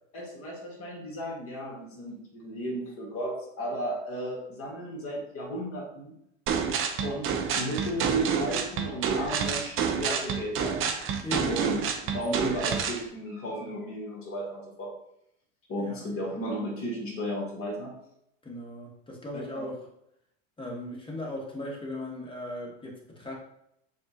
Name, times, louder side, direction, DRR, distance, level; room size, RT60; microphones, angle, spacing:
voice 1, 0.1-6.1 7.0-10.8 11.5-11.8 12.1-14.9 15.7-17.9 19.5-19.6, right 1 dB, 35° left, -2 dB, 1.6 m, -34 dB
sound 1, 6.5-13.0, right 6 dB, 35° right, 0.6 m, -28 dB
voice 2, 11.2-11.6 15.8-16.0 18.4-19.8 20.6-23.3, left 1 dB, 15° left, -2 dB, 1.3 m, -37 dB
7.1 x 2.4 x 2.8 m, 0.76 s
hypercardioid pair, 100°, 37 cm